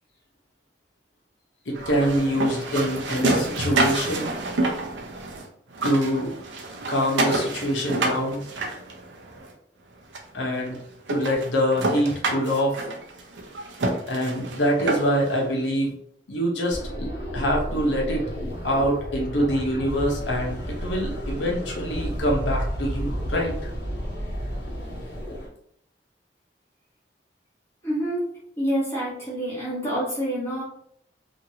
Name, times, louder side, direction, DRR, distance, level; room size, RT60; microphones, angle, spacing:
voice 1, 1.7-4.3 5.8-6.3 6.9-8.4 10.3-10.8 11.1-12.8 14.1-15.9 16.3-18.2 18.6-23.5, equal, 85° left, -1 dB, 0.9 m, -25 dB
sound 1, 1.7-5.4 5.7-9.5 10.1-10.2 10.7-10.8 11.1-15.3, right 2 dB, 80° right, 0.6 m, -28 dB
sound 2, 16.7-25.5, equal, 65° left, 1.2 m, -31 dB
voice 2, 27.8-28.2 28.6-30.6, equal, 15° left, -7 dB, 1.1 m, -27 dB
2.9 x 2.5 x 2.7 m, 0.68 s
head